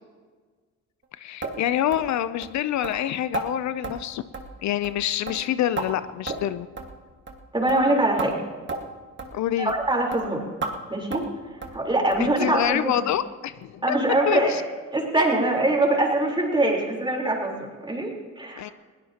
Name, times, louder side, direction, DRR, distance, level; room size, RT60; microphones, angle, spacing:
voice 1, 1.2-4.2 4.6-6.7 9.3-9.7 12.2-13.9 14.3-14.6 18.6-18.7, left 12 dB, 65° left, 14 dB, 0.5 m, -26 dB
sound 1, 1.4-1.6 1.9-2.1 2.4-2.5 2.8-3.0 3.3-3.5 3.8-4.0 4.3-4.6 4.8-5.0 5.3-5.9 6.3-6.5 6.8-6.9 7.3-7.4 7.7-7.8 8.2-8.3 8.7-8.8 9.2-9.3 9.7-9.8 10.1-10.2 10.6-10.7 11.1-11.3 11.6-11.8 12.1-12.3 12.6-12.7 13.1-13.2 13.6-13.7, right 3 dB, 40° right, 1.7 m, -32 dB
voice 2, 7.5-8.4 9.6-10.4 10.9-11.2 11.7-13.0 13.8-14.5 14.9-18.1 18.4-18.7, right 2 dB, 15° right, 0 dB, 3.9 m, -23 dB
20.5 x 17.0 x 2.9 m, 1.5 s
cardioid pair, 90°, 30 cm